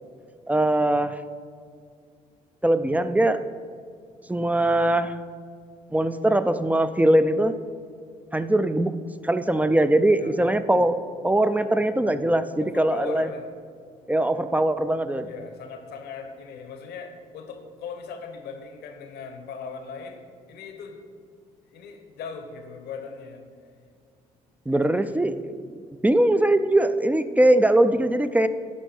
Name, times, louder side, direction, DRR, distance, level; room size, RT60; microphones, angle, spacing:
voice 1, 0.5-1.2 2.6-3.4 4.3-5.2 5.9-7.5 8.3-8.9 9.2-13.3 14.1-15.3 24.7-25.8 26.0-28.5, right 1 dB, 10° right, 11 dB, 0.4 m, -21 dB
voice 2, 12.6-13.5 14.9-21.0 21.7-23.4 24.7-25.0, left 5 dB, 70° left, 6 dB, 1.0 m, -39 dB
11.5 x 4.4 x 4.5 m, 2.2 s
hypercardioid pair, 60°, 17 cm